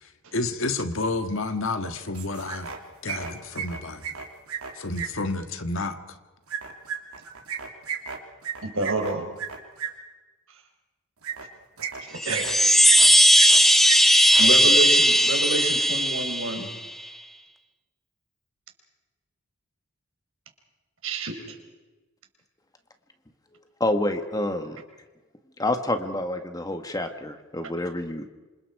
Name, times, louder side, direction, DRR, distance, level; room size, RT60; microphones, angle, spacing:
voice 1, 0.0-2.7 3.0-4.1 4.7-6.2, left 2 dB, 60° left, 1.7 m, -30 dB
sound 1, 2.1-2.8 3.0-5.1 6.5-9.9 11.2-11.4 11.8-12.5 12.8-13.6 13.8-14.0 14.2-14.5, right 7 dB, 85° right, 3.1 m, -33 dB
voice 2, 8.6-9.3 12.0-12.8 14.4-16.7 21.0-21.4, right 2 dB, 65° right, 4.5 m, -28 dB
Chime, 12.2-16.9, equal, ahead, 1.1 m, -18 dB
voice 3, 23.8-24.8 25.6-28.3, left 1 dB, 15° left, 1.5 m, -28 dB
28.0 x 26.5 x 4.8 m
head